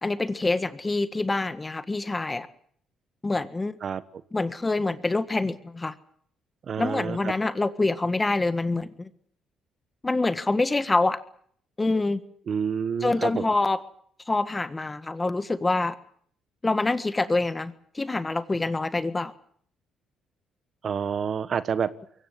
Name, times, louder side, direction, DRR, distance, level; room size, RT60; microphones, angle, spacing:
voice 1, 0.0-2.5 3.2-3.8 4.3-5.9 6.8-9.1 10.0-11.2 11.8-12.2 13.0-13.8 14.3-16.0 16.6-19.3, left 2 dB, 20° left, 13 dB, 1.5 m, -26 dB
voice 2, 6.7-7.3 12.5-13.5 20.8-21.9, right 7 dB, 50° right, 14 dB, 1.3 m, -28 dB
23.0 x 17.0 x 9.7 m, 0.63 s
cardioid pair, 100°, 0 cm